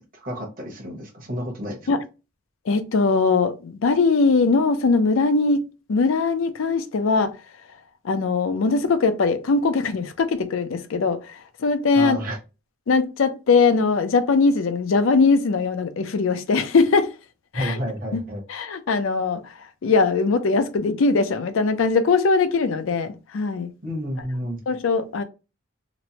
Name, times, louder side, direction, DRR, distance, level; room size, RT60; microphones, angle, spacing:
voice 1, 0.1-1.9 11.9-12.4 17.5-18.4 23.8-24.6, equal, 40° right, 0.9 m, -30 dB
voice 2, 2.7-5.6 5.9-7.3 8.0-12.2 12.9-17.1 17.5-17.8 18.1-18.2 18.5-19.4 19.8-23.7 24.7-25.2, left 4 dB, 65° left, 0.4 m, -21 dB
3.0 x 2.1 x 2.7 m
head